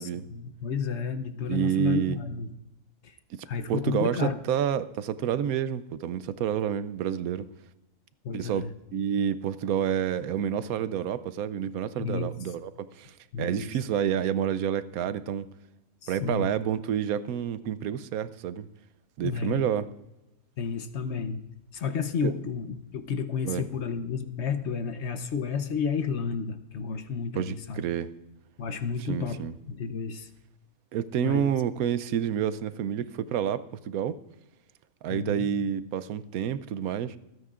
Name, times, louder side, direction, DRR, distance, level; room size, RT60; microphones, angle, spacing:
voice 1, 0.0-2.5 3.5-4.4 8.2-8.7 12.0-12.3 13.3-13.7 16.0-16.5 19.2-19.6 20.6-21.4 21.7-27.8 28.6-29.4 29.7-30.3 31.2-31.5 35.1-35.5, left 6 dB, 55° left, 9 dB, 1.0 m, -31 dB
voice 2, 1.5-2.2 3.7-7.5 8.3-15.5 16.1-18.7 19.2-19.9 22.2-22.3 23.5-23.7 27.4-28.1 29.1-29.5 30.9-34.2 35.0-37.2, right 9 dB, 85° right, 14 dB, 1.1 m, -29 dB
26.0 x 9.4 x 2.5 m, 0.92 s
omnidirectional pair, 1.5 m